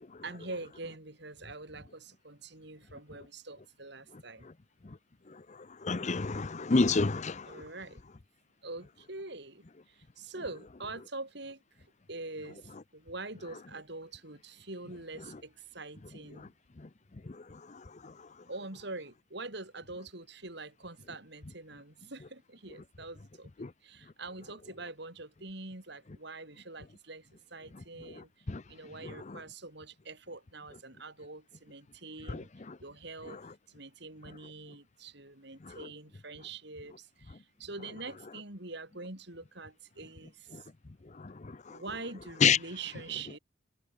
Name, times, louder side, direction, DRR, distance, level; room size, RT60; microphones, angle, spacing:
voice 1, 0.2-4.5 7.4-8.0 8.6-11.6 12.1-16.5 18.5-32.5 32.8-33.4 33.7-40.7 41.7-43.4, right 3 dB, 60° right, 4.8 m, -44 dB
voice 2, 5.8-7.5 28.5-28.6 32.3-32.4 42.4-42.6, left 4 dB, 35° left, 0.6 m, -26 dB
head